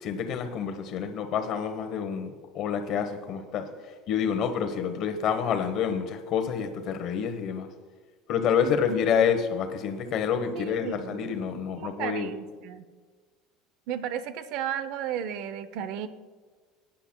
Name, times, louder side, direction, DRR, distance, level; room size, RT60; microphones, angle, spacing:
voice 1, 0.0-3.7 4.1-7.7 8.3-12.3, left 7 dB, 35° left, 7 dB, 1.0 m, -28 dB
voice 2, 8.6-9.0 10.6-11.3 11.5-12.9 13.9-16.1, right 9 dB, 50° right, 13 dB, 0.6 m, -34 dB
19.0 x 10.0 x 2.2 m, 1.5 s
cardioid pair, 175°, 0 cm